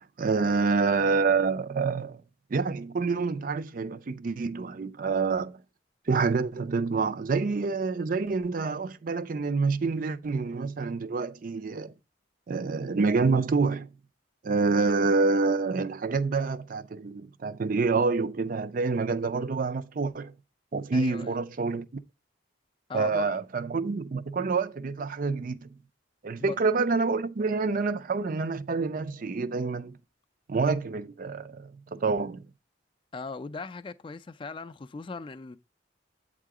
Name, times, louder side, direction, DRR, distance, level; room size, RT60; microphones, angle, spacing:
voice 1, 0.2-2.2 2.5-5.6 6.1-11.9 12.5-13.9 14.4-20.3 20.7-21.9 22.9-25.7 26.2-30.0 30.5-32.4, right 4 dB, 45° right, 0.4 m, -27 dB
voice 2, 20.9-21.4 22.9-23.3 26.4-26.6 33.1-35.6, left 4 dB, 25° left, 0.3 m, -39 dB
8.3 x 3.7 x 4.8 m
head